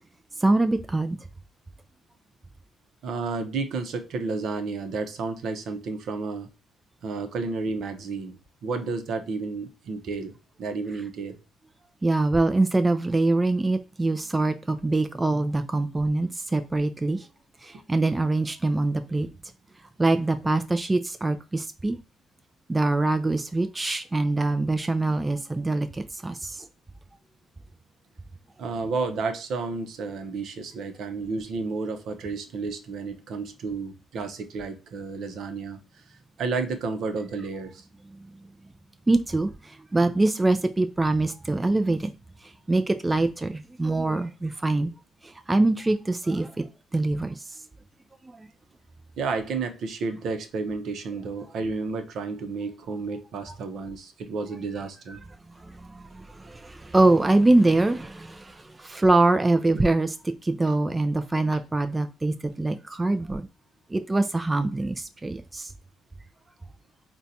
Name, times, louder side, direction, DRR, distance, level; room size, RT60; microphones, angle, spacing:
voice 1, 0.4-1.2 12.0-17.3 17.6-19.3 20.0-22.0 22.7-26.7 39.1-42.1 42.7-44.9 45.2-46.6 46.9-47.4 48.2-48.5 55.6-60.1 60.4-63.5 63.9-65.7, right 2 dB, 20° right, 0.3 m, -24 dB
voice 2, 3.0-6.5 7.0-8.3 8.6-11.4 28.6-35.8 36.4-37.8 49.2-55.2, right 4 dB, 70° right, 0.7 m, -31 dB
3.8 x 2.2 x 2.7 m
cardioid pair, 90°, 0 cm